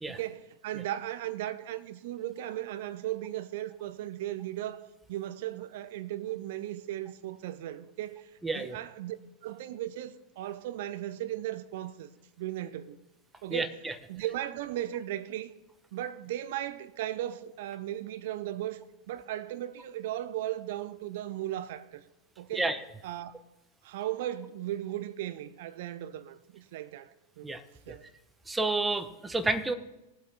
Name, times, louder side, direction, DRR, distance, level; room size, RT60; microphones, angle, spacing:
voice 1, 0.1-9.2 9.4-12.1 12.4-13.0 13.4-13.7 14.1-15.5 15.9-22.0 22.4-22.7 23.0-23.3 23.8-27.6 27.9-28.1, right 13 dB, 55° right, 0.6 m, -37 dB
voice 2, 8.4-8.8 13.5-13.9 22.5-22.8 27.4-27.6 28.5-29.7, right 2 dB, 10° right, 0.9 m, -30 dB
19.0 x 8.0 x 3.5 m
figure-of-eight pair, 90°, 0 cm